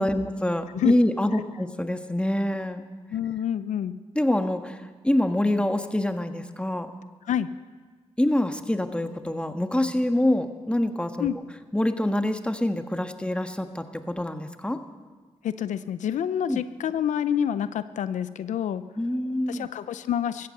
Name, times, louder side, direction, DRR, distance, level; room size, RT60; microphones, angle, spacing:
voice 1, 0.0-2.8 4.1-4.8 5.0-6.9 8.2-11.3 11.7-14.8 16.5-16.6 19.0-19.7, left 1 dB, 10° left, 7 dB, 1.5 m, -25 dB
voice 2, 3.1-3.9 7.2-7.5 11.2-11.4 15.4-18.8 19.5-20.5, left 9 dB, 90° left, 14 dB, 0.5 m, -27 dB
15.5 x 14.0 x 6.6 m, 1.5 s
cardioid pair, 50°, 12 cm